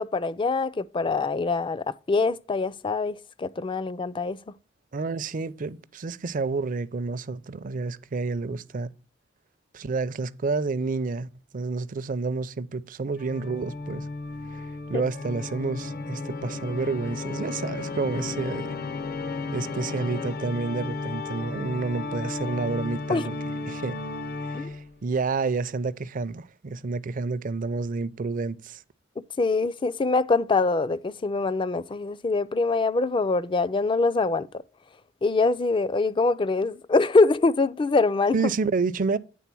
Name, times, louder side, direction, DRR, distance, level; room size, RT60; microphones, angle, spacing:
voice 1, 0.0-4.4 14.9-15.0 23.1-23.3 24.5-24.7 29.4-34.5 35.2-38.4, left 3 dB, 25° left, 0.4 m, -24 dB
voice 2, 4.9-8.9 9.7-14.1 14.5-18.8 19.5-23.9 24.4-28.8 38.3-39.2, right 4 dB, 45° right, 0.5 m, -29 dB
Organ, 13.2-25.0, left 3 dB, 55° left, 0.7 m, -34 dB
9.3 x 3.7 x 5.9 m
head